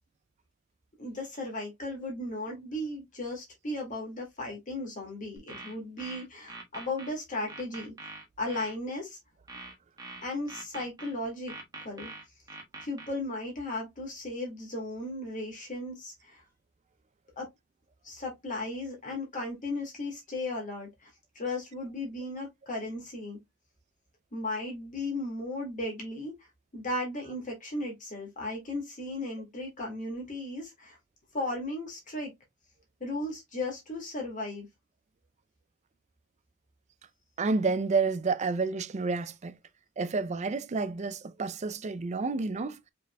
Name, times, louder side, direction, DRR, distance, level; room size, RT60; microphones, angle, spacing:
voice 1, 1.0-8.1 8.4-9.2 10.2-11.5 11.8-12.1 12.8-16.4 17.4-17.5 18.0-21.1 21.4-23.4 24.3-26.3 26.7-31.0 31.3-32.3 33.0-34.7, left 2 dB, 40° left, 2.0 m, -36 dB
sound 1, 5.4-7.1 7.5-8.7 9.5-11.1 11.5-13.1, right 2 dB, 20° right, 1.4 m, -44 dB
voice 2, 37.4-39.6 40.0-42.8, right 4 dB, 35° right, 0.4 m, -30 dB
5.3 x 4.0 x 2.2 m
head